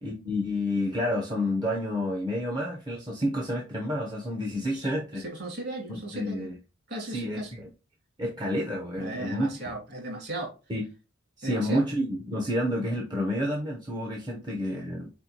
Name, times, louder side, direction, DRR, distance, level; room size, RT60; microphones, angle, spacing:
voice 1, 0.0-5.2 5.9-6.6 7.0-7.7 8.2-9.6 10.7-10.9 11.4-15.1, left 1 dB, 20° right, 0.6 m, -29 dB
voice 2, 5.2-6.5 6.9-7.5 9.0-10.5 11.4-11.8 14.3-14.4, right 2 dB, 50° right, 2.2 m, -36 dB
4.4 x 4.3 x 2.8 m
head